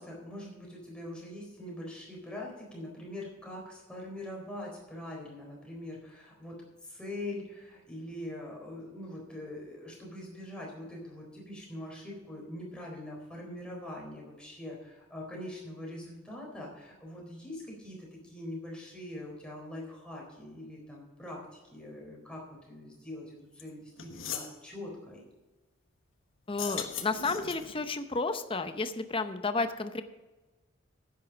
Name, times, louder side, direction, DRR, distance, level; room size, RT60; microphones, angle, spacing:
voice 1, 0.0-25.2, left 1 dB, 5° left, -2 dB, 3.9 m, -43 dB
sound 1, 23.6-23.7 24.0-24.5 26.5-27.8, left 8 dB, 70° left, 1.4 m, -38 dB
voice 2, 26.5-30.0, left 3 dB, 25° left, 10 dB, 0.7 m, -32 dB
10.5 x 9.0 x 5.1 m, 1.1 s
head